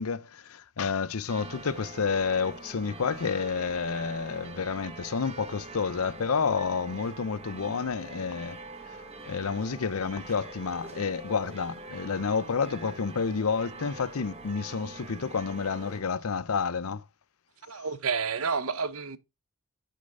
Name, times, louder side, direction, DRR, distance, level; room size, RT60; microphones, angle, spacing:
voice 1, 0.0-8.6 9.3-17.0, left 5 dB, 85° left, 0.7 m, -30 dB
sound 1, 1.3-16.0, right 2 dB, 30° right, 1.5 m, -44 dB
voice 2, 17.7-19.2, right 5 dB, 75° right, 0.9 m, -30 dB
9.5 x 6.7 x 3.7 m
head